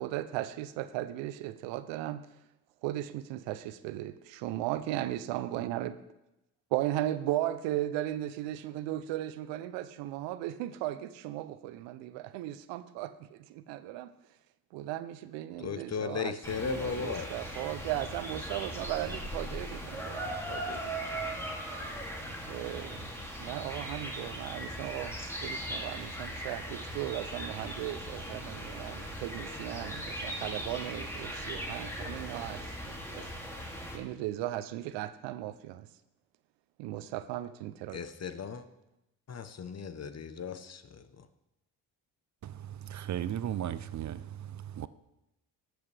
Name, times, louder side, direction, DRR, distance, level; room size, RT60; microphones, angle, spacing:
voice 1, 0.0-2.2 2.8-5.9 6.7-14.1 14.7-20.9 22.5-23.1 23.4-25.2 25.4-33.3 33.9-35.9 36.8-38.0, right 14 dB, 90° right, 0.6 m, -36 dB
voice 2, 15.6-17.4 37.9-38.6 39.3-41.3, left 6 dB, 35° left, 0.9 m, -36 dB
sound 1, 16.4-34.0, equal, 5° left, 2.5 m, -39 dB
voice 3, 42.8-44.5 44.8-44.9, right 11 dB, 45° right, 0.5 m, -35 dB
13.5 x 8.0 x 3.3 m
supercardioid pair, 60°, 42 cm